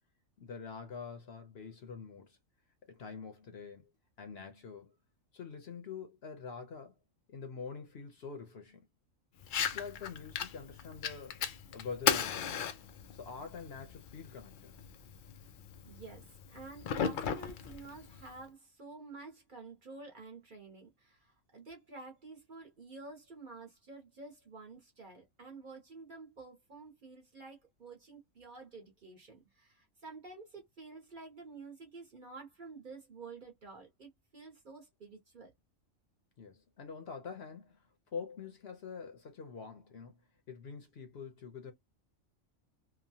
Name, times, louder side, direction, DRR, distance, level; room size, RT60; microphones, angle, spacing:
voice 1, 0.4-2.4 2.9-3.9 4.2-4.9 5.3-7.0 7.3-8.8 9.6-11.4 11.7-12.6 13.1-14.7 36.4-37.8 38.1-40.2 40.5-41.7, left 5 dB, 55° left, 0.8 m, -45 dB
Fire, 9.4-18.4, left 7 dB, 80° left, 0.4 m, -37 dB
voice 2, 15.8-35.5, right 3 dB, 45° right, 0.9 m, -50 dB
3.0 x 2.2 x 2.7 m
omnidirectional pair, 1.4 m